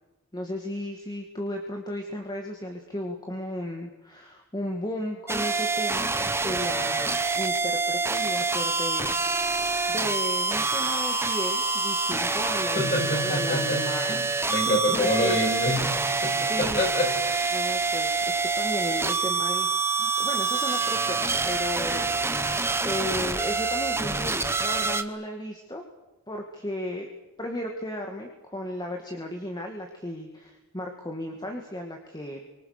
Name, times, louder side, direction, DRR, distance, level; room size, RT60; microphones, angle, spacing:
voice 1, 0.3-9.2 9.6-14.2 14.6-15.4 16.5-16.9 17.5-19.7 20.0-25.8 26.3-27.1 27.4-32.4, left 1 dB, 20° left, 2 dB, 2.2 m, -35 dB
sound 1, 5.3-25.0, right 4 dB, 10° right, 1.1 m, -26 dB
voice 2, 12.7-17.8, left 1 dB, 35° left, 0 dB, 7.6 m, -27 dB
29.5 x 25.0 x 6.8 m, 0.99 s
head